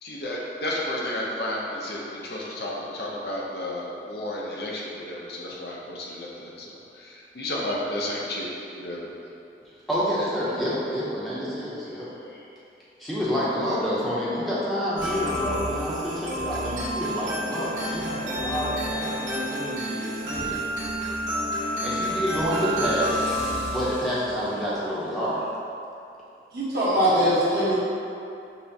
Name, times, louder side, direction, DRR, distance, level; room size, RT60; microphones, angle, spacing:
voice 1, 0.0-8.5 8.8-9.0 19.3-19.4, left 1 dB, 60° left, -4 dB, 0.6 m, -32 dB
voice 2, 9.9-12.1 13.0-20.6 21.8-25.5, equal, ahead, -9 dB, 0.6 m, -28 dB
sound 1, 15.0-24.6, equal, 80° right, 1.1 m, -30 dB
voice 3, 26.5-27.7, equal, 60° right, -9 dB, 1.0 m, -21 dB
5.5 x 2.1 x 2.7 m, 2.7 s
head